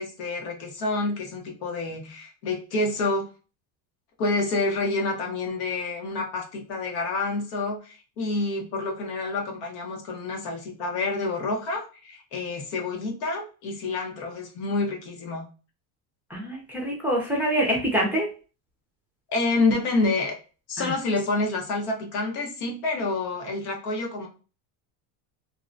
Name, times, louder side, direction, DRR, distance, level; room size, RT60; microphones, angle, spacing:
voice 1, 0.0-3.3 4.2-15.5 19.3-20.3 20.7-24.3, left 3 dB, 75° left, 1 dB, 1.2 m, -28 dB
voice 2, 16.3-18.3 20.8-20.9, right 1 dB, 5° right, -3 dB, 0.4 m, -25 dB
2.9 x 2.2 x 2.5 m, 0.35 s
cardioid pair, 140°, 48 cm